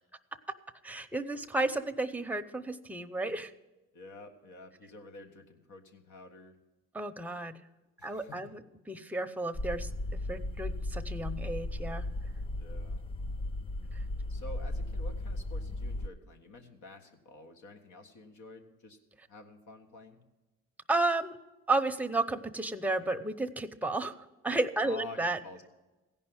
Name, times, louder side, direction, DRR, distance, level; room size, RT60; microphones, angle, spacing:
voice 1, 0.8-3.5 6.9-7.5 8.0-8.6 8.9-9.9 10.3-12.1 20.9-21.4 21.7-25.4, right 2 dB, 5° right, 7 dB, 0.7 m, -32 dB
voice 2, 3.9-6.6 8.0-8.4 12.6-13.0 14.1-19.0 19.3-20.2 24.8-25.7, left 2 dB, 75° left, 4 dB, 1.7 m, -49 dB
sound 1, 9.5-16.1, left 1 dB, 20° left, 0.4 m, -36 dB
16.0 x 5.4 x 8.8 m, 1.1 s
cardioid pair, 90°, 30 cm